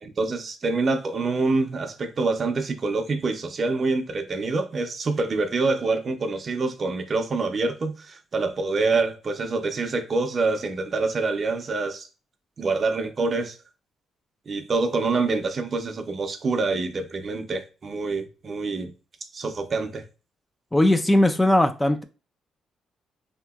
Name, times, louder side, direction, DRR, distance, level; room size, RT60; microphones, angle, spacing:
voice 1, 0.0-12.1 12.6-13.6 14.5-18.9 19.3-20.0, right 3 dB, 45° right, 0.6 m, -26 dB
voice 2, 20.7-22.0, left 1 dB, 15° left, 0.4 m, -19 dB
3.3 x 2.8 x 2.3 m
cardioid pair, 75°, 0 cm